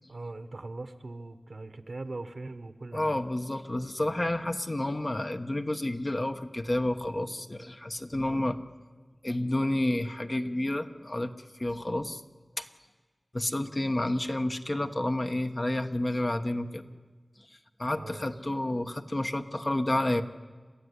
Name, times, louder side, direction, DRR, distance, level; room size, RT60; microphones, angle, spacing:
voice 1, 0.1-3.2 17.9-18.4, right 2 dB, 75° right, 10 dB, 1.2 m, -41 dB
voice 2, 2.9-8.6 9.2-11.3 11.6-12.2 12.6-12.7 13.3-16.9 17.8-20.2, left 1 dB, 40° left, 6 dB, 1.1 m, -30 dB
28.5 x 13.0 x 9.8 m, 1.4 s
wide cardioid pair, 50°, 0 cm